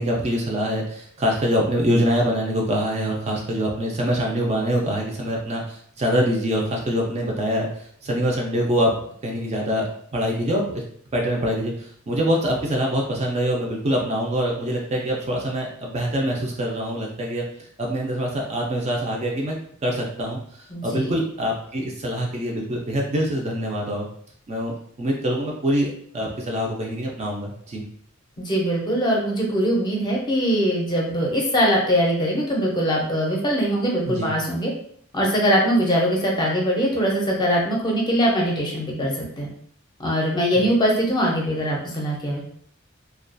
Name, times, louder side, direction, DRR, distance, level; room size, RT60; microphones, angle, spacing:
voice 1, 0.0-9.0 9.2-10.8 11.1-24.1 24.5-24.7 25.0-27.8 34.1-34.3, equal, 30° right, -1 dB, 0.3 m, -24 dB
voice 2, 20.7-21.1 28.4-34.7 35.1-39.5 40.0-42.4, equal, 20° left, -2 dB, 0.5 m, -22 dB
2.3 x 2.2 x 2.5 m, 0.62 s
head